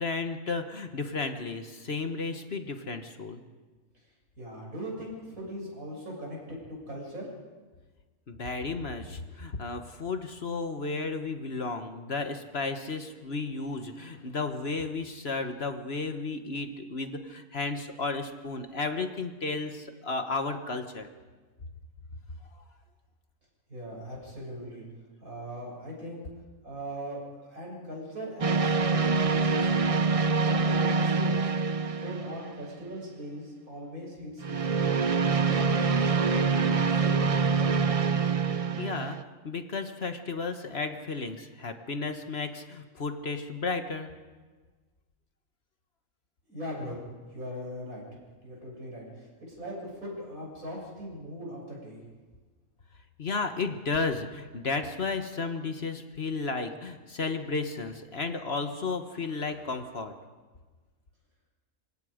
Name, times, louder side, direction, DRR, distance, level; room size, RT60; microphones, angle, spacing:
voice 1, 0.0-3.4 8.3-21.1 38.8-39.2 39.4-44.1 53.2-60.1, left 3 dB, 50° left, 7 dB, 1.5 m, -33 dB
voice 2, 4.4-7.3 23.7-24.8 25.2-26.2 26.6-27.2 27.5-30.0 30.4-31.5 32.0-34.8 35.4-37.6 46.5-47.0 47.3-48.0 48.4-52.0, equal, 80° right, -3 dB, 7.9 m, -40 dB
sound 1, 28.4-32.9 34.4-39.2, right 4 dB, 40° right, 0.5 m, -25 dB
26.0 x 25.5 x 5.1 m, 1.4 s
omnidirectional pair, 1.5 m